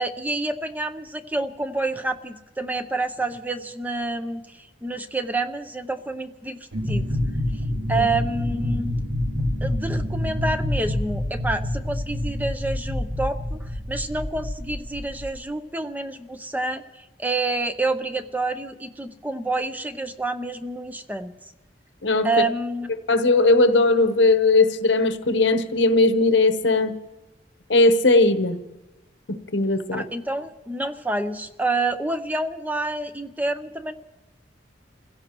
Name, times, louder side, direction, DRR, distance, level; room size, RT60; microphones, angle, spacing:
voice 1, 0.0-6.6 6.9-7.1 7.9-9.0 9.6-13.6 13.9-16.8 17.2-21.3 22.2-22.9 29.9-33.9, right 2 dB, 10° right, 0.6 m, -28 dB
sound 1, 6.7-15.3, left 1 dB, 75° right, 3.7 m, -27 dB
voice 2, 23.1-26.9 27.7-28.6 29.3-30.0, left 2 dB, 75° left, 1.0 m, -18 dB
29.0 x 16.0 x 3.0 m
head